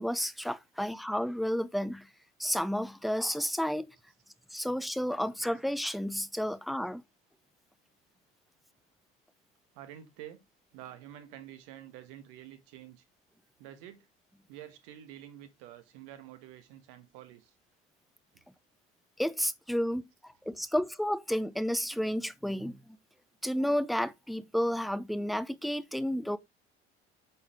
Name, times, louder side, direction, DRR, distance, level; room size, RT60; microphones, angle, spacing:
voice 1, 0.0-2.1 2.4-3.9 4.5-7.0 19.2-23.0 23.4-26.4, equal, ahead, 0.5 m, -31 dB
voice 2, 9.7-10.4 10.7-13.0 13.6-14.1 14.5-17.5, right 11 dB, 60° right, 1.5 m, -49 dB
8.4 x 4.2 x 3.6 m
figure-of-eight pair, 65°, 32 cm